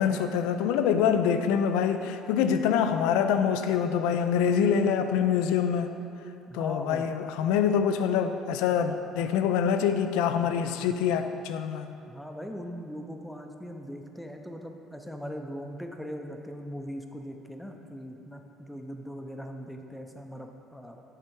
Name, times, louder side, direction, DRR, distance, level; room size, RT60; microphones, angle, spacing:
voice 1, 0.0-5.9 6.5-11.9, left 7 dB, 85° left, 9 dB, 0.3 m, -25 dB
voice 2, 6.5-7.1 12.1-21.0, equal, 5° left, 4 dB, 0.5 m, -40 dB
7.6 x 3.3 x 4.6 m, 2.7 s
cardioid pair, 100°, 0 cm